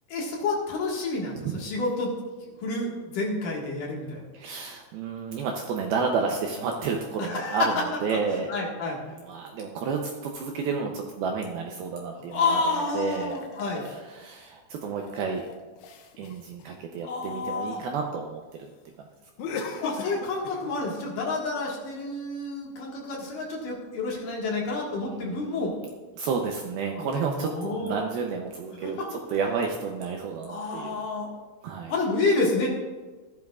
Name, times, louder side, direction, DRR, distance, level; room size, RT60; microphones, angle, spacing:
voice 1, 0.1-2.1 2.6-4.2 7.3-7.6 8.5-9.0 12.3-13.8 17.0-17.8 19.8-25.7 27.0-27.9 28.8-28.9 30.5-31.3 31.9-32.7, left 3 dB, 55° left, -3 dB, 2.8 m, -29 dB
voice 2, 4.3-8.5 9.2-13.4 13.8-15.5 16.2-18.7 19.0-19.1 25.0-25.8 26.2-31.0 31.6-31.9, right 5 dB, 80° right, 2 dB, 2.2 m, -31 dB
sound 1, 12.3-14.1 14.8-17.4 19.4-20.8, left 4 dB, 90° left, 3.4 m, -38 dB
15.5 x 12.0 x 2.4 m, 1.3 s
omnidirectional pair, 5.1 m